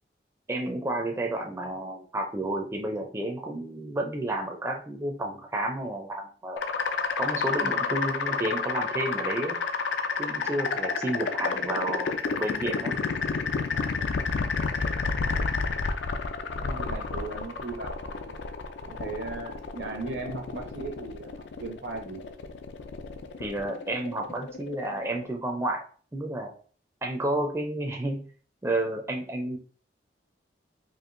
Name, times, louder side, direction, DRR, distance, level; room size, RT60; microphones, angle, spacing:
voice 1, 0.5-6.6 7.2-9.6 10.2-12.1 12.4-13.0 23.4-25.8 26.1-26.5 27.0-28.3 28.6-29.6, right 1 dB, 15° right, 1 dB, 0.4 m, -31 dB
sound 1, 6.6-25.3, left 4 dB, 80° left, 0.4 m, -30 dB
voice 2, 15.2-15.7 16.5-18.4 18.8-22.2, right 3 dB, 75° right, 3 dB, 0.9 m, -38 dB
4.4 x 2.6 x 2.5 m, 0.42 s
head